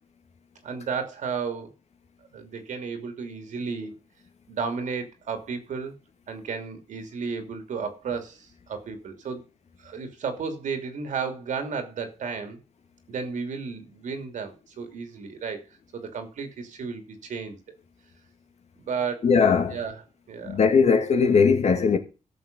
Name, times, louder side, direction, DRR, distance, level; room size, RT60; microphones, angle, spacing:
voice 1, 0.6-1.7 2.3-3.9 4.5-5.9 6.3-9.4 9.8-12.6 13.1-15.6 15.9-17.6 18.8-19.3 19.7-20.0 20.3-20.6, right 5 dB, 85° right, 2.8 m, -33 dB
voice 2, 19.2-19.8 20.4-22.0, left 5 dB, 60° left, 2.3 m, -19 dB
13.5 x 7.0 x 5.3 m
wide cardioid pair, 135°, 13 cm